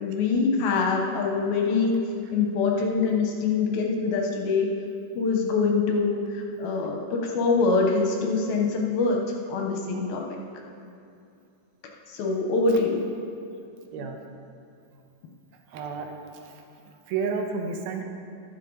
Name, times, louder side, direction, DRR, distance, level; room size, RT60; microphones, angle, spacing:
voice 1, 0.0-1.9 2.3-4.7 5.2-6.2 6.6-7.0 7.4-9.2 9.5-10.2 12.2-13.0, left 4 dB, 70° left, 1 dB, 2.4 m, -24 dB
voice 2, 15.7-16.1 16.4-16.6 17.1-18.0, right 5 dB, 75° right, 3 dB, 2.5 m, -31 dB
14.0 x 12.0 x 3.9 m, 2.5 s
omnidirectional pair, 5.1 m